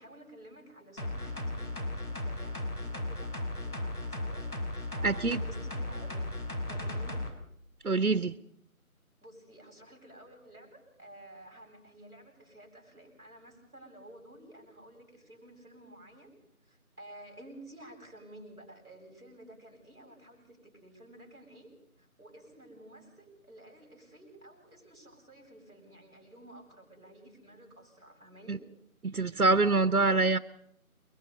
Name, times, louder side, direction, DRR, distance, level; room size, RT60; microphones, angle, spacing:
voice 1, 0.0-6.4 6.6-7.3 9.2-16.3 16.6-21.7 22.0-28.6, right 1 dB, 5° left, -21 dB, 6.6 m, -52 dB
sound 1, 1.0-7.3 7.7-7.8, left 1 dB, 90° left, 4.6 m, -36 dB
voice 2, 5.0-5.4 7.8-8.3 28.5-28.6 29.0-30.4, right 3 dB, 85° right, 12 dB, 1.0 m, -25 dB
29.5 x 22.5 x 4.2 m, 0.68 s
figure-of-eight pair, 175°, 43 cm